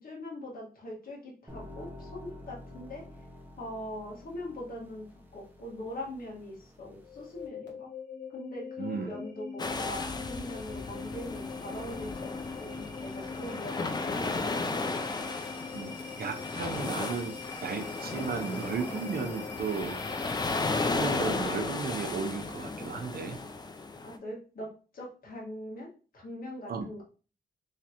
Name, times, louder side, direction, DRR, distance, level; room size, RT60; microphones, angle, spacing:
voice 1, 0.0-3.0 3.6-5.0 5.3-7.9 8.3-12.3 12.6-15.0 24.0-27.0, left 1 dB, 55° left, -3 dB, 1.6 m, -42 dB
sound 1, 1.5-7.5, left 1 dB, 10° right, 0.7 m, -49 dB
sound 2, 7.0-20.9, left 5 dB, 75° left, 1.1 m, -43 dB
voice 2, 8.8-9.1 13.5-13.6 15.7-15.9 16.2-20.0 20.8-23.4 26.7-26.9, right 5 dB, 55° right, 6 dB, 0.6 m, -35 dB
sound 3, 9.6-24.2, left 3 dB, 25° left, 0.4 m, -35 dB
3.7 x 3.2 x 2.9 m, 0.36 s
wide cardioid pair, 145°, 18 cm